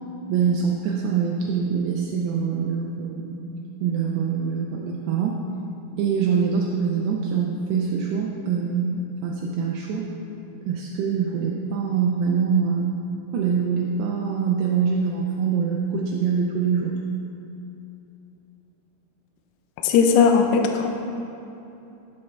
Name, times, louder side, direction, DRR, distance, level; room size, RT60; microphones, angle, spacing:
voice 1, 0.3-3.4 3.8-5.4 6.0-10.1 10.7-13.0 13.3-16.9, right 6 dB, 90° right, -1 dB, 2.3 m, -24 dB
voice 2, 19.8-20.9, left 6 dB, 85° left, 3 dB, 2.5 m, -18 dB
13.5 x 5.7 x 3.3 m, 2.9 s
omnidirectional pair, 5.5 m